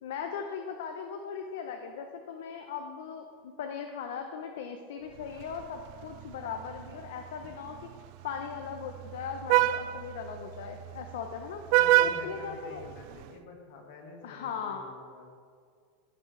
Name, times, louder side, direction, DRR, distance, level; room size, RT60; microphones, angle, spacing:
voice 1, 0.0-7.9 8.2-11.6 12.0-12.8 14.2-14.8, left 7 dB, 80° left, 4 dB, 0.7 m, -39 dB
Vehicle horn car horn honking, 5.2-13.3, right 14 dB, 50° right, 0.3 m, -30 dB
voice 2, 11.8-15.3, left 3 dB, 60° left, 1 dB, 1.7 m, -47 dB
15.0 x 5.9 x 3.3 m, 2.1 s
supercardioid pair, 155°, 0 cm